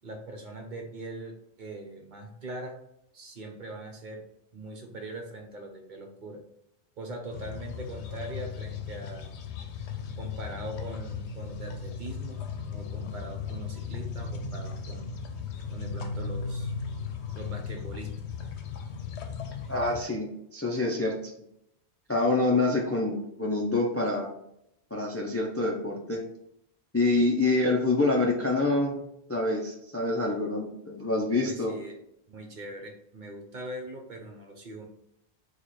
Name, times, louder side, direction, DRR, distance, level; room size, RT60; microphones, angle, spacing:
voice 1, 0.0-2.8 3.1-4.2 4.5-6.4 7.0-9.3 10.2-12.4 12.7-15.1 15.7-16.7 17.3-18.1 31.2-32.0 32.3-34.9, right 1 dB, 50° right, 3 dB, 0.8 m, -41 dB
sound 1, 7.3-20.0, left 5 dB, 90° left, 0.9 m, -36 dB
voice 2, 19.7-21.3 22.1-24.3 24.9-26.2 26.9-29.0 29.3-31.8, left 2 dB, 20° left, -1 dB, 0.4 m, -26 dB
4.7 x 2.4 x 4.1 m, 0.77 s
omnidirectional pair, 1.1 m